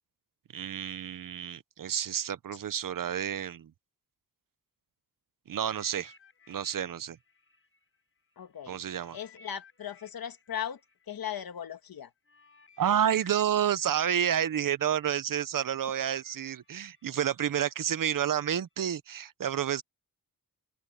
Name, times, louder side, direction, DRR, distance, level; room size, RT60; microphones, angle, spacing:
voice 1, 0.5-3.7 5.5-6.1 6.5-7.2 8.7-9.2 12.8-19.8, right 9 dB, 65° right, 0.8 m, -30 dB
sound 1, 5.5-8.5 8.9-17.9 18.6-18.8, left 3 dB, 35° left, 6.8 m, -59 dB
voice 2, 8.4-8.8 9.1-10.8 11.1-12.1, left 9 dB, 75° left, 1.5 m, -38 dB
open air
wide cardioid pair, 120°, 36 cm